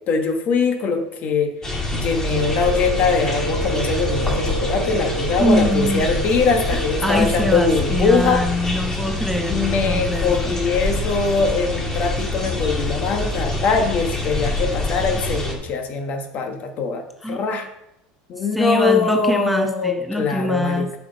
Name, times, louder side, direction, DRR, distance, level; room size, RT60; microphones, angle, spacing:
voice 1, 0.1-8.4 9.5-17.0 17.3-17.7 18.3-21.0, left 4 dB, 45° left, 6 dB, 1.2 m, -22 dB
sound 1, 1.6-15.5, left 2 dB, 15° left, 1.7 m, -25 dB
Wind instrument woodwind instrument, 2.3-8.1, right 5 dB, 85° right, 1.3 m, -29 dB
voice 2, 5.4-6.1 6.7-10.6 17.2-17.4 18.4-21.0, left 1 dB, ahead, 4 dB, 0.8 m, -23 dB
8.5 x 5.9 x 4.0 m, 0.88 s
supercardioid pair, 125°, 4 cm